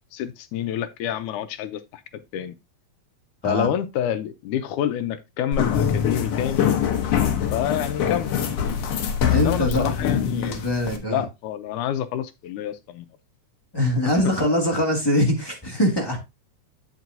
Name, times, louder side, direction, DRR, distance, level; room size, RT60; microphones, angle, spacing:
voice 1, 0.1-2.0 2.3-2.6 3.4-6.7 7.5-8.4 9.3-10.6 11.1-13.1, left 10 dB, 80° left, 2.1 m, -28 dB
sound 1, 5.5-11.0, left 8 dB, 60° left, 1.8 m, -24 dB
voice 2, 9.3-11.2 13.7-16.2, left 1 dB, 10° left, 1.4 m, -23 dB
8.3 x 7.6 x 2.7 m
omnidirectional pair, 3.7 m